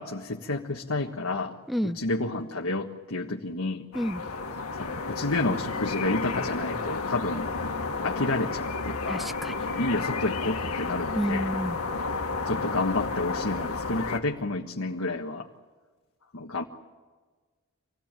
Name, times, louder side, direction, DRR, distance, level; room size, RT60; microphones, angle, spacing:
voice 1, 0.0-1.6 2.0-3.9 4.8-7.5 8.0-9.3 9.6-11.5 12.4-15.5 16.3-16.6, left 2 dB, 65° left, 0 dB, 1.5 m, -30 dB
voice 2, 1.7-2.0 3.9-4.2 9.1-9.7 11.1-11.8, equal, ahead, 12 dB, 0.7 m, -29 dB
sound 1, 3.9-14.2, left 4 dB, 85° left, 2.0 m, -32 dB
26.5 x 18.0 x 9.1 m, 1.4 s
head